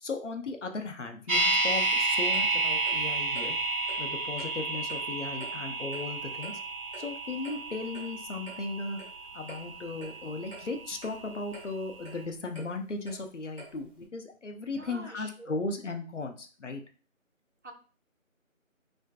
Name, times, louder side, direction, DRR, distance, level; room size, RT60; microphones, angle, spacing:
voice 1, 0.0-3.6 4.0-6.5 7.0-9.0 9.3-16.8, left 3 dB, 60° left, 5 dB, 0.5 m, -36 dB
sound 1, 1.3-11.3 11.6-11.7, right 3 dB, 90° right, 0.9 m, -31 dB
Clock, 2.3-14.0, right 1 dB, 40° left, 0.8 m, -51 dB
voice 2, 14.7-15.7 17.6-17.7, right 3 dB, 60° right, 5 dB, 0.5 m, -46 dB
2.4 x 2.3 x 2.3 m, 0.39 s
figure-of-eight pair, 175°, 41 cm